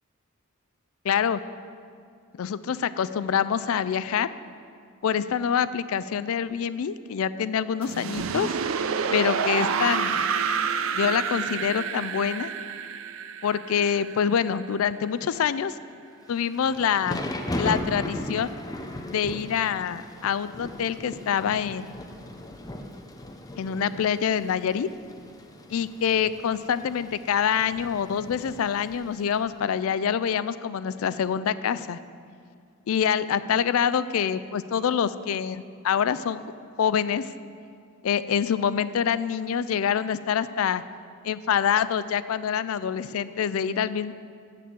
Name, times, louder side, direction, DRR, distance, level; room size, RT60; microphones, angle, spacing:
voice 1, 1.0-1.4 2.4-4.3 5.0-8.5 9.1-10.2 10.9-12.5 13.4-15.8 16.3-17.2 17.6-18.5 19.1-22.0 23.6-24.9 25.7-32.0 32.9-36.4 36.8-37.3 38.0-40.8 41.2-44.1, left 8 dB, 80° left, 15 dB, 0.4 m, -26 dB
sound 1, 7.8-14.7, right 6 dB, 75° right, 0.5 m, -28 dB
Thunder / Rain, 16.3-29.4, left 1 dB, 15° left, 0.6 m, -37 dB
8.5 x 6.7 x 7.5 m, 2.2 s
head